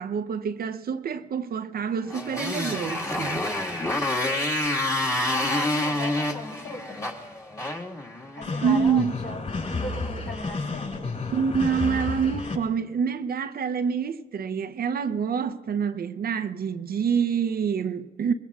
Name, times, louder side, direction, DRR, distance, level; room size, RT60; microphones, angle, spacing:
voice 1, 0.0-3.4 8.6-9.1 11.3-18.3, right 6 dB, 50° right, 0.7 m, -26 dB
Motorcycle, 2.1-8.6, left 1 dB, 15° left, 1.8 m, -28 dB
voice 2, 5.2-7.0 8.3-10.9, left 1 dB, 55° left, 3.8 m, -37 dB
sound 1, 8.4-12.5, left 3 dB, 40° left, 5.8 m, -31 dB
24.0 x 21.5 x 2.4 m
cardioid pair, 90°, 20 cm